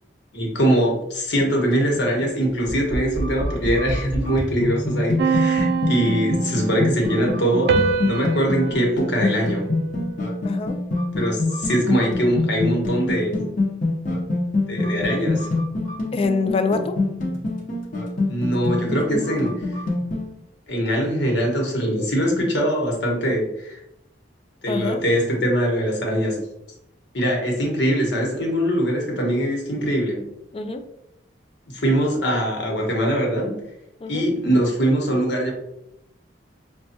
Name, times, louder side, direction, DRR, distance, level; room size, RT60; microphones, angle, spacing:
voice 1, 0.3-7.7 8.0-9.7 11.2-13.5 14.7-15.5 18.3-19.7 20.7-23.8 24.6-26.4 27.1-30.2 31.7-33.6 34.1-35.5, equal, 80° left, 0 dB, 1.2 m, -22 dB
sound 1, 1.5-20.3, left 2 dB, 45° left, 0.8 m, -26 dB
sound 2, 5.2-7.0 7.7-10.3, right 5 dB, 65° right, 0.3 m, -25 dB
voice 2, 10.4-10.8 16.1-17.0 24.7-25.0 30.5-30.9 34.0-34.2, left 4 dB, 30° left, 8 dB, 0.3 m, -25 dB
5.4 x 2.3 x 2.8 m, 0.83 s
head